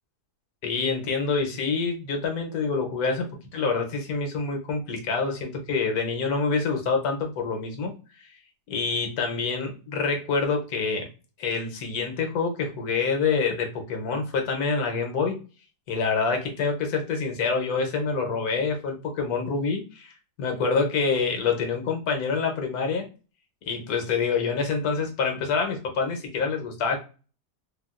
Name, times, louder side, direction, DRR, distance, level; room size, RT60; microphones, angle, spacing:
voice 1, 0.6-7.9 8.2-8.3 8.7-11.1 11.4-15.4 15.9-23.1 23.7-27.0, left 4 dB, 70° left, 3 dB, 1.2 m, -26 dB
3.4 x 2.3 x 2.3 m, 0.34 s
omnidirectional pair, 1.8 m